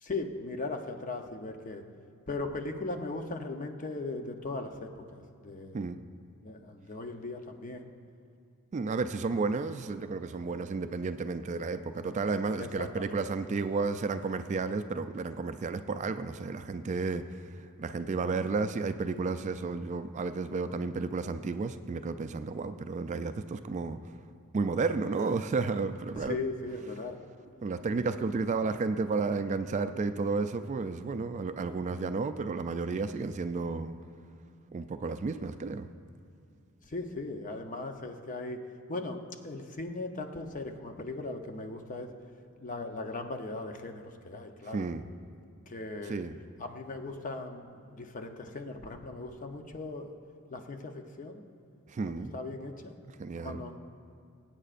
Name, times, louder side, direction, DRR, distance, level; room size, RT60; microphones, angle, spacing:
voice 1, 0.0-1.8 2.3-5.8 6.4-7.9 12.6-13.2 26.1-27.2 36.8-38.6 38.9-42.1 42.6-44.9 45.7-46.2 46.6-50.1 50.5-51.4 52.0-52.9 53.4-53.8, left 2 dB, 35° left, 5 dB, 0.7 m, -38 dB
voice 2, 8.7-17.4 17.8-24.0 24.5-26.4 27.6-33.9 34.7-35.9 44.7-45.1 46.1-46.4 51.9-52.3 53.2-53.6, right 4 dB, 35° right, 9 dB, 0.3 m, -32 dB
22.5 x 8.8 x 2.5 m, 2.5 s
head